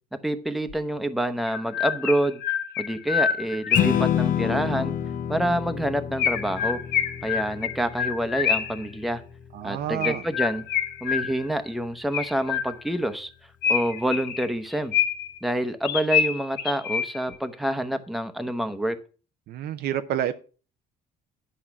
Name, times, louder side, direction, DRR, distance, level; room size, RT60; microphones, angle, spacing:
voice 1, 0.2-2.4 2.8-4.9 5.3-6.8 7.2-9.2 9.6-10.6 11.0-13.3 13.7-14.9 15.4-19.0, right 1 dB, ahead, 0.9 m, -27 dB
Chirp tweet, 0.7-0.8 1.5-4.1 6.2-8.9 10.0-11.6 12.1-13.0 13.6-15.4 15.8-17.4, left 8 dB, 75° left, 1.4 m, -27 dB
Strum, 3.7-10.0, left 10 dB, 50° left, 0.7 m, -29 dB
voice 2, 9.5-10.2 19.5-20.3, right 11 dB, 70° right, 0.6 m, -28 dB
10.0 x 5.5 x 5.9 m
cardioid pair, 110°, 17 cm